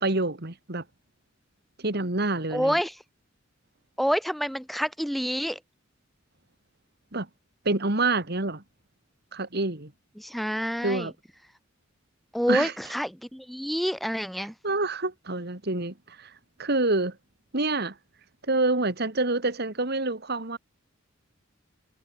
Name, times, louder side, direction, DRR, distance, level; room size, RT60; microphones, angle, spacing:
voice 1, 0.0-0.8 1.8-2.8 7.1-7.3 7.6-8.6 9.3-9.9 10.8-11.1 12.5-12.7 14.4-16.3 16.6-17.2 17.5-17.9 18.5-20.6, right 2 dB, 50° right, 2.5 m, -27 dB
voice 2, 2.5-2.9 4.0-5.6 10.2-11.1 12.3-14.5, equal, ahead, 0.9 m, -27 dB
head